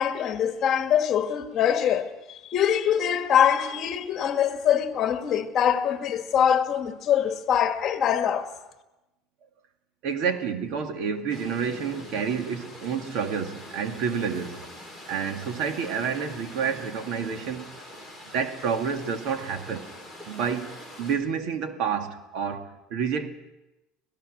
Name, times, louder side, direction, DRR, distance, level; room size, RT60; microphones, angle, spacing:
voice 1, 0.0-2.1 2.5-8.5, left 9 dB, 35° left, 1.9 m, -23 dB
voice 2, 10.0-14.6 15.1-17.7 18.3-19.9 20.3-23.3, right 6 dB, 55° right, 2.1 m, -29 dB
sound 1, 11.3-21.2, left 1 dB, 20° right, 5.3 m, -44 dB
25.5 x 18.0 x 6.5 m
cardioid pair, 160°, 0 cm